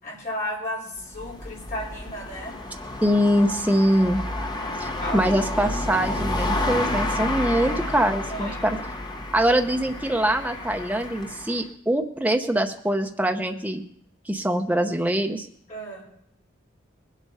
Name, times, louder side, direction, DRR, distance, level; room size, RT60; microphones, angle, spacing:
voice 1, 0.0-2.6 5.0-5.3 7.2-7.3 8.3-8.9 15.7-16.1, equal, 40° left, -3 dB, 5.4 m, -34 dB
sound 1, 1.0-11.6, left 1 dB, 20° left, 1.0 m, -30 dB
voice 2, 3.0-4.2 4.8-8.8 9.3-13.8 14.3-15.5, equal, 5° right, 3 dB, 0.8 m, -23 dB
20.5 x 8.2 x 5.6 m, 0.68 s
head